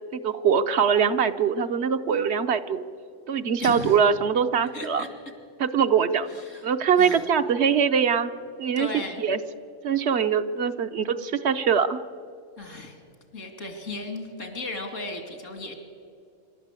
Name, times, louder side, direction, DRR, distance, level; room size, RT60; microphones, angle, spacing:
voice 1, 0.1-2.8 3.3-5.0 5.6-8.3 8.6-8.9 9.2-9.4 9.8-12.0, right 7 dB, 65° right, 10 dB, 1.0 m, -23 dB
voice 2, 3.6-4.0 4.7-5.1 6.3-7.3 8.8-9.2 12.6-13.0 13.3-15.8, left 2 dB, 80° left, 6 dB, 3.0 m, -35 dB
26.0 x 12.5 x 8.3 m, 2.5 s
omnidirectional pair, 1.3 m